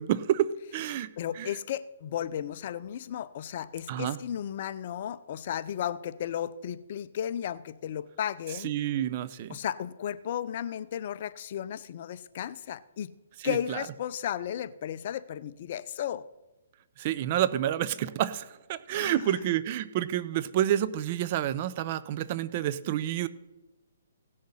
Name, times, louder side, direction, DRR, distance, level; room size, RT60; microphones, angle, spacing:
voice 1, 0.0-1.5 3.9-4.2 8.5-9.6 13.4-13.9 17.0-23.3, right 12 dB, 40° right, 15 dB, 0.6 m, -29 dB
voice 2, 1.2-8.7 9.5-13.1 13.4-16.2 18.9-19.4, left 10 dB, 45° left, 15 dB, 0.6 m, -34 dB
17.0 x 6.5 x 5.6 m, 1.0 s
hypercardioid pair, 150°, 0 cm